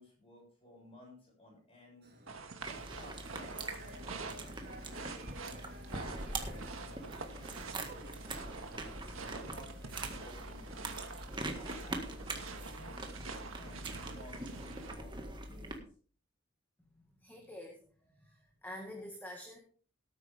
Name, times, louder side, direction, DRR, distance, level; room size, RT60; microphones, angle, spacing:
voice 1, 0.0-2.1 2.6-7.9 9.1-11.1 11.5-13.0 13.5-15.2 15.4-15.9, left 1 dB, 30° left, -1 dB, 6.8 m, -57 dB
sound 1, 2.0-11.2, right 1 dB, 50° right, 3.4 m, -54 dB
sound 2, 2.3-14.9, right 4 dB, 80° right, 1.7 m, -47 dB
sound 3, 2.6-15.8, right 2 dB, 20° right, 1.7 m, -43 dB
voice 2, 17.2-17.8 18.1-19.6, left 1 dB, 10° left, 1 dB, 1.7 m, -47 dB
18.0 x 9.2 x 3.5 m, 0.43 s
head